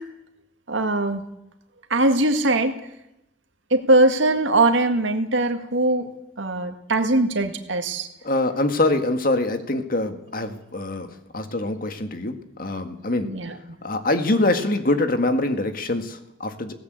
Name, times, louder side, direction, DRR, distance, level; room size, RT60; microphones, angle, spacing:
voice 1, 0.7-1.2 1.9-2.8 3.7-6.1 6.4-8.1 13.2-13.5, right 2 dB, 75° right, 6 dB, 1.9 m, -21 dB
voice 2, 8.2-11.1 11.3-13.3 13.8-16.8, left 2 dB, 45° left, 7 dB, 1.9 m, -24 dB
20.0 x 17.0 x 8.2 m, 0.84 s
head